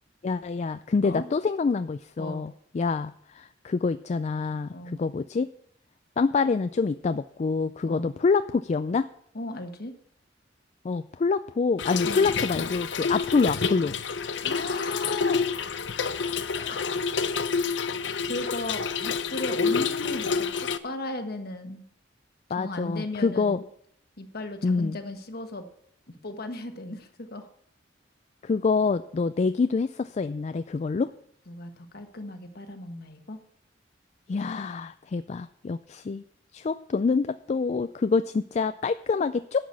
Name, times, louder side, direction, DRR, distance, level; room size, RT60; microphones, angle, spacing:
voice 1, 0.2-5.5 6.2-9.1 10.8-13.9 16.6-16.8 22.5-23.6 24.6-25.0 28.4-31.1 34.3-36.2 36.5-39.7, left 4 dB, 35° left, 12 dB, 0.3 m, -26 dB
voice 2, 9.3-9.9 12.0-12.2 14.4-15.4 16.7-16.8 18.3-21.8 22.6-23.6 24.2-25.7 26.1-27.5 31.5-33.4, left 1 dB, 55° left, 7 dB, 1.4 m, -36 dB
Trickle dribble / Fill (with liquid), 11.8-20.8, left 5 dB, 70° left, 0.7 m, -28 dB
11.0 x 6.1 x 8.5 m, 0.68 s
head